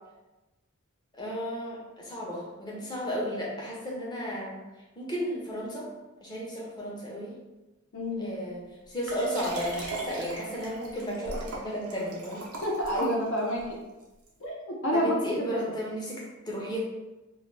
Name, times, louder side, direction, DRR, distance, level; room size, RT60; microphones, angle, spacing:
voice 1, 1.2-4.6 5.0-5.9 6.2-7.3 8.2-8.6 8.9-12.4 14.9-16.8, equal, 20° left, -4 dB, 0.6 m, -34 dB
voice 2, 7.9-8.3 12.6-13.8 14.4-15.7, equal, 60° left, -3 dB, 0.6 m, -29 dB
Liquid, 9.0-13.6 14.3-14.4, right 2 dB, 85° right, 0.6 m, -38 dB
2.2 x 2.1 x 3.1 m, 1.1 s
head